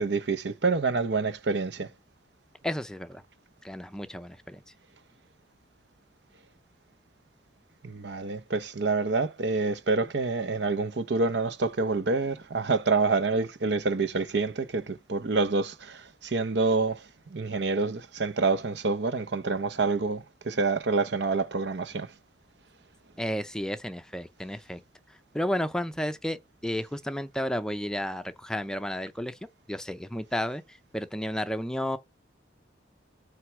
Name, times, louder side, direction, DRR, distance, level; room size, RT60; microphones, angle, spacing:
voice 1, 0.0-1.9 7.8-22.1, right 3 dB, 65° right, 0.7 m, -27 dB
voice 2, 2.6-3.2 3.6-4.6 23.2-24.8 25.3-29.4 29.7-30.6 30.9-32.0, equal, 5° left, 0.5 m, -32 dB
7.8 x 3.3 x 6.1 m
head